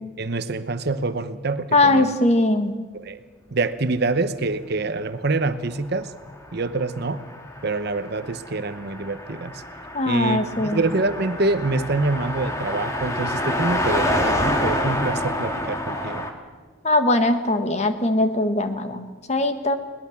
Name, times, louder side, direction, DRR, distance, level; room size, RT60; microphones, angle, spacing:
voice 1, 0.2-2.1 2.9-3.2 3.5-6.1 6.5-7.2 7.6-9.6 10.0-16.2, right 3 dB, 55° right, 11 dB, 0.9 m, -26 dB
voice 2, 1.7-2.7 9.9-10.8 16.8-19.8, left 2 dB, 35° left, 8 dB, 1.5 m, -20 dB
Car passing by, 6.2-16.3, left 1 dB, 15° left, 2.0 m, -28 dB
21.0 x 19.0 x 7.2 m, 1.4 s
head